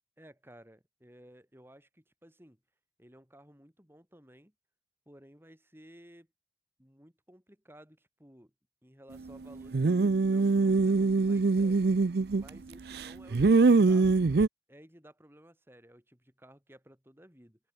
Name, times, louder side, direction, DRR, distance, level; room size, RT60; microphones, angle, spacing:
voice 1, 0.2-2.6 3.0-4.5 5.1-6.3 6.8-8.5 8.8-11.9 12.3-14.4 14.7-17.6, equal, 15° right, 7.9 m, -56 dB
sound 1, 9.7-12.6 12.9-14.5, right 3 dB, 60° right, 0.5 m, -23 dB
head